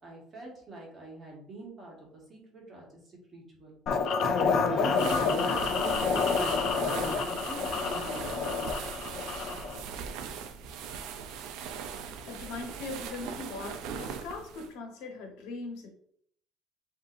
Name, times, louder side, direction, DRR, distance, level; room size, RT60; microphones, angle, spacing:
voice 1, 0.0-3.8 4.7-8.4, right 2 dB, 25° right, -2 dB, 1.3 m, -44 dB
sound 1, 3.9-9.8, left 5 dB, 40° left, 0.5 m, -28 dB
sound 2, 4.9-14.7, right 7 dB, 70° right, 0.5 m, -39 dB
voice 2, 11.8-15.9, left 3 dB, 90° left, 2 dB, 1.1 m, -40 dB
7.1 x 2.7 x 2.5 m, 0.65 s
cardioid pair, 175°, 0 cm